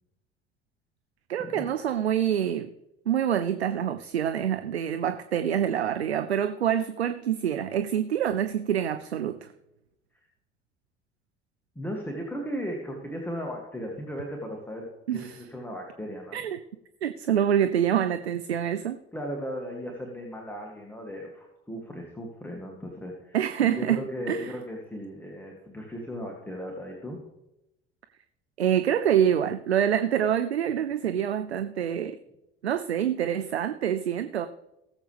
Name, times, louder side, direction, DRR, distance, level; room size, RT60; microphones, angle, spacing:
voice 1, 1.3-2.7 3.1-9.5 15.1-15.4 16.3-16.6 17.0-19.0 23.3-24.0 24.3-24.5 28.6-32.2 32.6-34.5, right 9 dB, 85° right, 0.5 m, -26 dB
voice 2, 11.8-16.4 19.1-23.4 23.6-27.2, equal, 5° left, 2.4 m, -36 dB
19.0 x 7.5 x 3.4 m
figure-of-eight pair, 60°, 31 cm